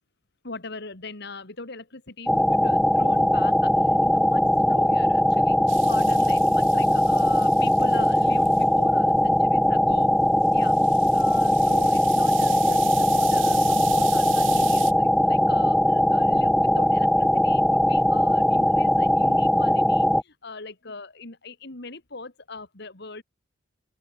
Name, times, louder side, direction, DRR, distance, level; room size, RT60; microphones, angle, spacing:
voice 1, 0.4-5.6 5.8-10.1 10.5-10.8 11.1-23.2, left 3 dB, 60° left, 2.5 m, -40 dB
sound 1, 2.3-20.2, left 1 dB, ahead, 0.3 m, -20 dB
sound 2, 5.7-8.7 10.4-14.9, right 17 dB, 80° right, 0.8 m, -39 dB
open air
head